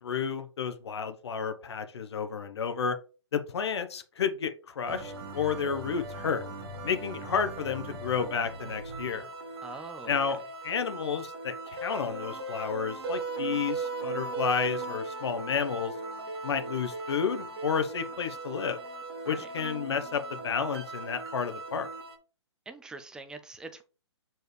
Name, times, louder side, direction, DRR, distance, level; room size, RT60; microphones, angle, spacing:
voice 1, 0.0-3.0 3.3-6.5 6.8-9.3 10.1-10.4 10.6-15.9 16.4-18.8 19.3-21.9, left 6 dB, 65° left, 0.9 m, -31 dB
sound 1, 4.9-22.2, right 3 dB, 55° right, 1.6 m, -38 dB
voice 2, 9.6-10.2 19.3-19.5 22.7-23.8, right 3 dB, 5° right, 0.4 m, -43 dB
6.4 x 4.5 x 3.3 m
hypercardioid pair, 135°, 15 cm